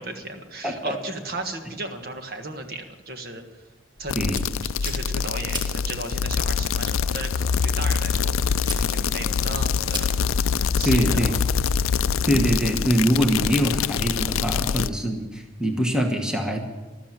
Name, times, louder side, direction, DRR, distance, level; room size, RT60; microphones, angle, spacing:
voice 1, 0.0-3.4 4.0-4.2 4.6-10.1 10.8-11.2, right 2 dB, 50° right, 5 dB, 1.6 m, -35 dB
voice 2, 0.6-1.0 4.2-4.4 10.8-11.3 12.3-16.6, equal, 5° right, 3 dB, 1.2 m, -23 dB
sound 1, 4.0-10.8, right 1 dB, 20° right, 1.9 m, -40 dB
sound 2, 4.1-14.9, left 6 dB, 80° left, 0.4 m, -24 dB
14.0 x 13.0 x 7.4 m, 1.2 s
head